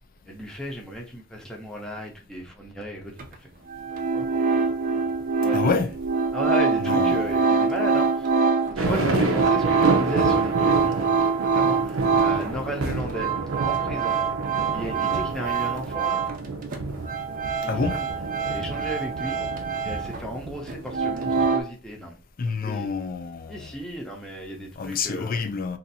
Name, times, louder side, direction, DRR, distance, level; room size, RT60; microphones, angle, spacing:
voice 1, 0.3-3.5 3.9-4.6 5.4-5.8 6.3-8.3 8.7-14.2 14.7-16.2 17.6-18.1 18.5-19.4 19.8-22.9 23.5-25.4, equal, 5° left, 0.7 m, -35 dB
sound 1, 3.2-3.3 3.7-12.6 12.9-16.5 16.7-20.3 20.7-21.6, right 5 dB, 40° right, 0.5 m, -25 dB
voice 2, 5.5-5.9 6.8-7.4 8.8-9.4 17.6-18.0 22.4-23.7 24.8-25.8, left 5 dB, 45° left, 0.4 m, -28 dB
sound 2, 8.8-21.5, right 3 dB, 85° right, 0.6 m, -29 dB
2.7 x 2.5 x 4.1 m
head